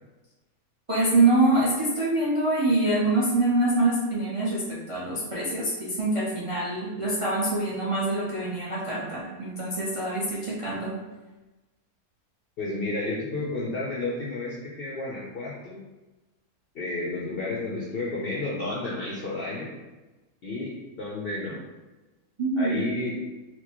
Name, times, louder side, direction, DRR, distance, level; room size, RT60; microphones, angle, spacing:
voice 1, 0.9-10.9 22.4-22.7, right 2 dB, 45° right, -7 dB, 0.4 m, -25 dB
voice 2, 12.6-15.8 16.7-19.7 20.4-21.6 22.6-23.2, left 2 dB, 65° left, -5 dB, 0.6 m, -31 dB
4.4 x 2.1 x 2.9 m, 1.1 s
omnidirectional pair, 1.6 m